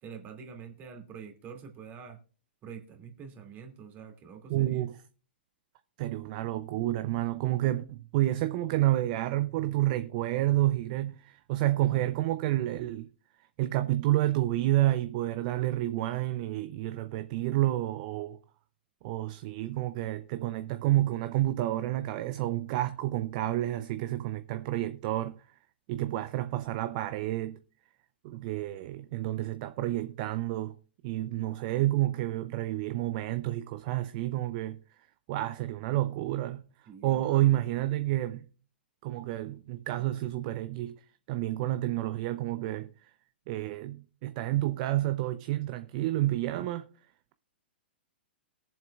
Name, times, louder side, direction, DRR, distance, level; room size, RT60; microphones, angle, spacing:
voice 1, 0.0-2.2 2.6-4.9 36.9-37.6, right 6 dB, 30° right, 2.5 m, -46 dB
voice 2, 4.5-4.9 6.0-13.1 13.6-18.4 19.0-25.4 25.9-27.6 28.2-30.7 31.0-34.8 35.3-36.6 37.0-38.4 39.0-41.0 41.3-42.9 43.5-46.9, right 15 dB, 45° right, 0.6 m, -29 dB
22.0 x 7.4 x 2.4 m
hypercardioid pair, 115°, 6 cm